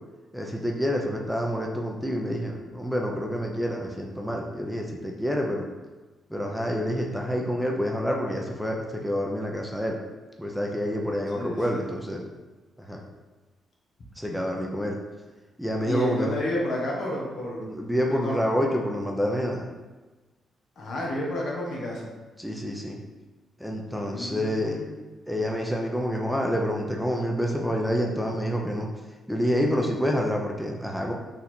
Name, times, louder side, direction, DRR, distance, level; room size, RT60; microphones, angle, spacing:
voice 1, 0.3-5.7 6.3-10.0 10.4-12.2 12.8-13.0 14.2-15.0 15.6-16.3 17.6-19.7 22.4-23.0 23.6-24.8 25.3-28.9 29.3-31.1, equal, ahead, 0 dB, 0.7 m, -28 dB
voice 2, 11.4-11.8 15.9-17.7 18.0-18.4 20.8-22.1 23.9-25.0, left 1 dB, 65° left, -3 dB, 1.2 m, -31 dB
4.1 x 2.7 x 4.4 m, 1.2 s
supercardioid pair, 60°, 0 cm